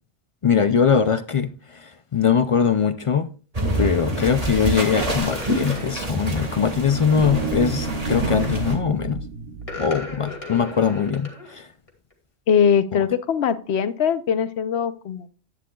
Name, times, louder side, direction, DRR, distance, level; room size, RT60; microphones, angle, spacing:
voice 1, 0.4-1.5 1.8-3.3 3.7-9.2 9.8-11.7, left 7 dB, 50° left, 0.4 m, -21 dB
sound 1, 3.5-8.8, right 1 dB, 35° right, 1.7 m, -26 dB
sound 2, 5.3-5.9 7.9-8.2 9.6-11.6 11.9-12.1, left 3 dB, 30° left, 2.1 m, -36 dB
sound 3, 6.4-10.7, right 5 dB, 60° right, 1.2 m, -32 dB
voice 2, 12.5-15.3, left 7 dB, 80° left, 1.0 m, -21 dB
11.0 x 9.1 x 2.3 m
omnidirectional pair, 1.1 m